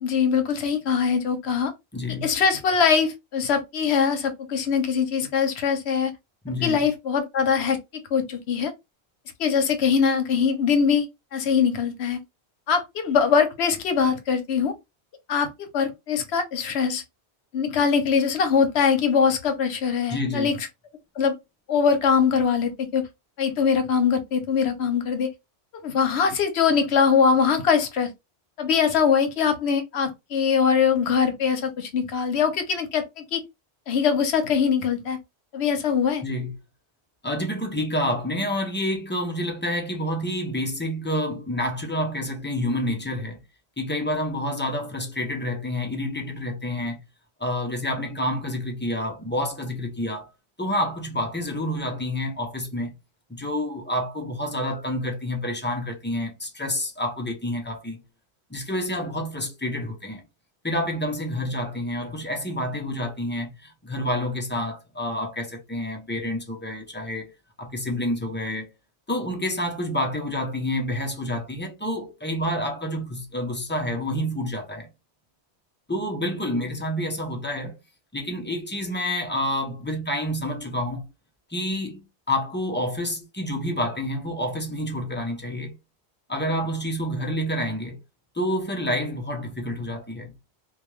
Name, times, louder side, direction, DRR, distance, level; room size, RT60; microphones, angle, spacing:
voice 1, 0.0-1.7 2.2-6.1 6.6-8.7 9.4-12.2 12.7-14.7 15.3-17.0 17.5-20.6 21.2-21.4 21.7-23.1 23.4-25.3 25.7-28.1 28.6-33.4 33.9-35.2 35.5-36.2, left 6 dB, 75° left, 0.9 m, -22 dB
voice 2, 1.9-2.3 6.4-6.9 20.1-20.5 36.2-36.5 37.2-43.4 43.8-47.0 47.4-50.3 50.6-52.9 53.3-58.0 58.5-60.2 60.6-67.3 67.6-68.7 69.1-74.9 75.9-77.7 78.1-81.0 81.5-85.7 86.3-88.0 88.3-90.3, left 1 dB, 20° left, 0.3 m, -28 dB
2.3 x 2.2 x 3.0 m
omnidirectional pair, 1.1 m